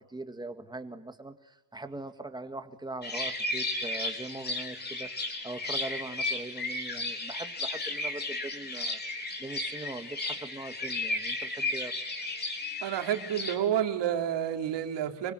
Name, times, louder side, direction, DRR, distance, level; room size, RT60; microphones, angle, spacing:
voice 1, 0.0-11.9, right 2 dB, 10° right, 8 dB, 1.9 m, -41 dB
sound 1, 3.0-13.6, left 2 dB, 20° left, 3.9 m, -34 dB
voice 2, 12.8-15.3, right 10 dB, 70° right, 5 dB, 3.4 m, -29 dB
25.5 x 24.0 x 9.7 m, 1.1 s
cardioid pair, 155°, 44 cm